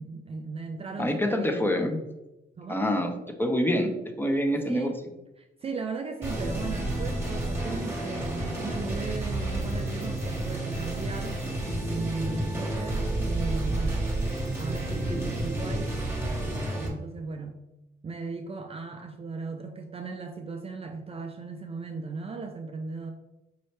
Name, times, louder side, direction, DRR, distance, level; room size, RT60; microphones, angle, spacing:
voice 1, 0.0-1.7 2.6-2.9 4.6-5.0 5.4-11.4 11.8-14.0 14.6-16.0 16.8-17.6 18.0-23.1, right 4 dB, 30° right, 5 dB, 0.4 m, -37 dB
voice 2, 1.0-2.0 2.7-3.1 3.4-3.9 4.2-4.9, equal, 10° left, 4 dB, 0.7 m, -25 dB
sound 1, 6.2-16.9, right 1 dB, 10° right, 1.4 m, -30 dB
5.3 x 2.7 x 3.2 m, 0.98 s
cardioid pair, 90°, 20 cm